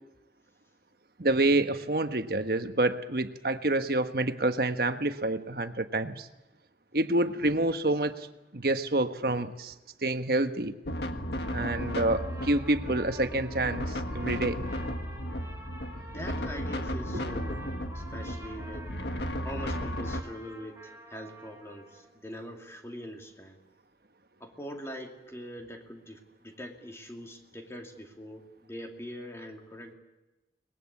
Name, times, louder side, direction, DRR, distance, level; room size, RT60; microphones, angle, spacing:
voice 1, 1.2-6.3 6.9-8.3 8.5-9.7 10.0-10.7 11.5-14.6, right 2 dB, 55° right, 9 dB, 1.2 m, -28 dB
sound 1, 10.8-20.2, equal, 75° left, 1.7 m, -34 dB
Trumpet, 11.3-22.1, right 2 dB, 15° right, 7.0 m, -49 dB
voice 2, 16.0-18.9 19.4-23.6 24.4-29.9, equal, 15° left, 2 dB, 2.7 m, -43 dB
23.5 x 20.0 x 8.5 m, 1.0 s
head